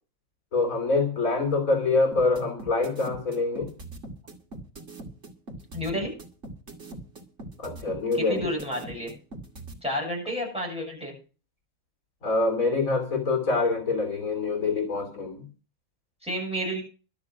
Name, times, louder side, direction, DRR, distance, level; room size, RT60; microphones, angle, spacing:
voice 1, 0.5-3.7 7.6-8.5 12.2-15.5, left 3 dB, 80° left, 4 dB, 3.6 m, -25 dB
sound 1, 2.1-9.7, right 2 dB, 60° right, 2.7 m, -41 dB
voice 2, 5.7-6.1 8.1-9.1 9.8-11.1 16.2-16.8, equal, 5° right, -2 dB, 7.9 m, -30 dB
12.5 x 6.8 x 8.6 m, 0.36 s
omnidirectional pair, 1.4 m